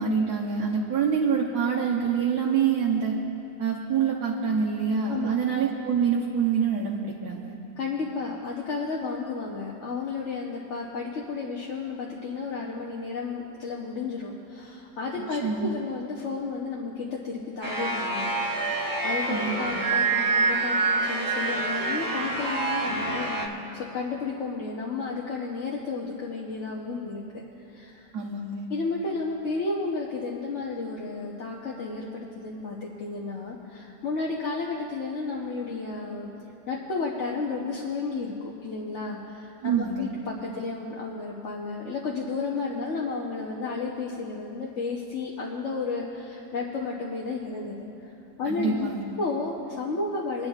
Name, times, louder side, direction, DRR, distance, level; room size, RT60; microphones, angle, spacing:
voice 1, 0.0-3.2 3.6-7.6 15.3-15.7 19.3-19.8 28.1-28.7 39.6-40.1 48.4-49.0, right 6 dB, 70° right, -4 dB, 1.4 m, -26 dB
voice 2, 7.8-18.4 18.8-23.3 23.7-27.2 27.7-28.1 28.7-36.3 36.7-47.9 48.4-48.9 49.2-50.5, left 4 dB, 50° left, -3 dB, 1.1 m, -32 dB
sound 1, 17.6-23.5, right 3 dB, 15° right, 0.8 m, -26 dB
26.0 x 10.5 x 2.4 m, 2.9 s
omnidirectional pair, 1.8 m